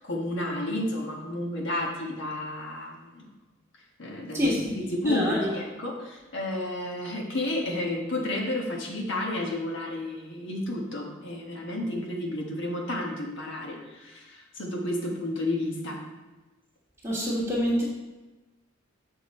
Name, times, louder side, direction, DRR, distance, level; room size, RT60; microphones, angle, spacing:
voice 1, 0.0-3.3 4.0-16.0, left 1 dB, 65° left, 0 dB, 1.4 m, -31 dB
voice 2, 5.0-5.5 17.0-17.8, equal, 10° right, -7 dB, 1.5 m, -26 dB
7.3 x 6.1 x 4.3 m, 1.1 s
head